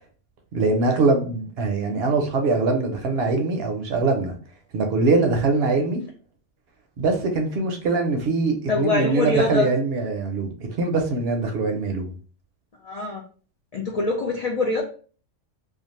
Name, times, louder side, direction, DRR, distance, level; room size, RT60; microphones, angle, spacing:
voice 1, 0.5-4.3 4.7-6.0 7.0-10.5 10.8-12.1, right 3 dB, 65° right, 4 dB, 0.7 m, -22 dB
voice 2, 8.7-9.7 12.8-13.2 13.7-14.8, left 3 dB, 70° left, -1 dB, 0.3 m, -24 dB
2.5 x 2.3 x 2.9 m, 0.40 s
omnidirectional pair, 1.3 m